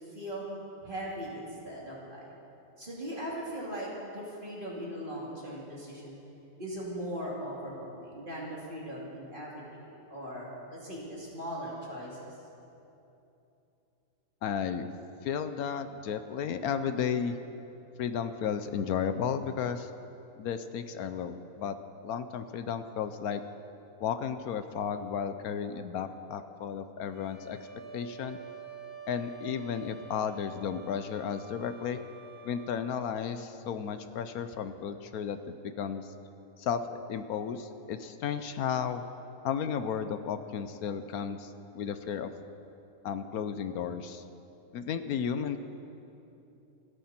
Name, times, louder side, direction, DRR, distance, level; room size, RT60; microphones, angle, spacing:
voice 1, 0.1-0.4 0.8-2.3 2.8-6.2 6.6-12.2, equal, 35° right, -5 dB, 3.0 m, -39 dB
voice 2, 14.4-14.9 15.2-17.4 18.0-19.9 20.4-21.7 22.0-23.4 24.0-27.6 27.9-28.4 29.1-32.0 32.4-35.4 35.6-36.1 36.6-36.8 37.1-39.0 39.4-42.3 43.0-44.2 44.7-45.6, left 7 dB, 75° left, 10 dB, 1.2 m, -33 dB
sound 1, 27.0-33.0, right 5 dB, 50° right, 3.7 m, -47 dB
28.5 x 10.0 x 4.3 m, 2.9 s
omnidirectional pair, 1.6 m